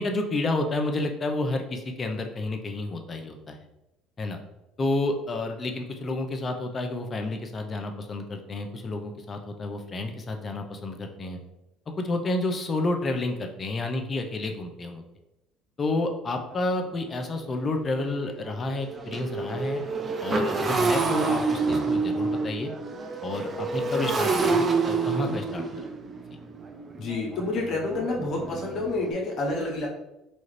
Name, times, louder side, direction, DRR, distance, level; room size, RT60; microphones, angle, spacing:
voice 1, 0.0-3.6 4.2-4.4 4.8-11.4 12.0-15.0 15.8-19.8 20.2-22.7 23.2-25.6, left 2 dB, 35° left, 4 dB, 0.6 m, -30 dB
Motorcycle, 16.5-16.6 17.1-17.2 17.5-29.1, right 4 dB, 35° right, 0.5 m, -28 dB
voice 2, 27.0-29.9, left 2 dB, 55° left, -1 dB, 1.0 m, -28 dB
4.1 x 2.4 x 3.2 m, 0.92 s
supercardioid pair, 75°, 0 cm